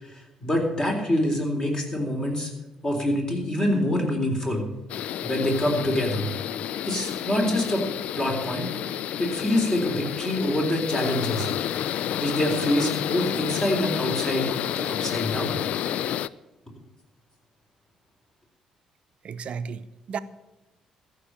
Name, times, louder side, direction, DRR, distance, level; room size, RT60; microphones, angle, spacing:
voice 1, 0.0-2.5 2.8-4.6 5.2-6.2 6.9-7.8 8.1-8.7 9.2-11.5 12.2-14.5 14.8-15.6, left 1 dB, 30° left, 3.8 m, -25 dB
sound 1, 4.9-16.3, left 11 dB, 60° left, 0.3 m, -30 dB
voice 2, 19.2-20.2, right 6 dB, 50° right, 0.7 m, -34 dB
14.0 x 6.1 x 9.0 m
hypercardioid pair, 45°, 2 cm